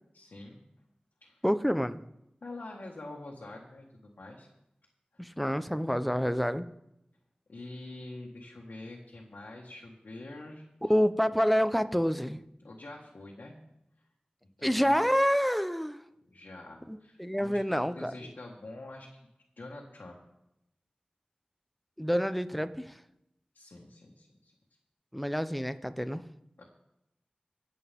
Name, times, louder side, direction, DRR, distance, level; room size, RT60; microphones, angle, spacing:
voice 1, 0.1-0.6 1.2-1.4 2.4-4.5 7.5-10.6 12.6-13.6 14.6-15.1 16.3-19.1 19.6-20.1 23.5-24.5 26.6-26.7, left 2 dB, 85° left, -2 dB, 1.9 m, -46 dB
voice 2, 1.4-2.0 5.2-6.7 10.8-12.4 14.6-16.0 16.9-18.3 22.0-22.9 25.1-26.2, equal, ahead, 11 dB, 0.9 m, -28 dB
25.0 x 8.5 x 3.7 m, 0.85 s
wide cardioid pair, 45°, 3 cm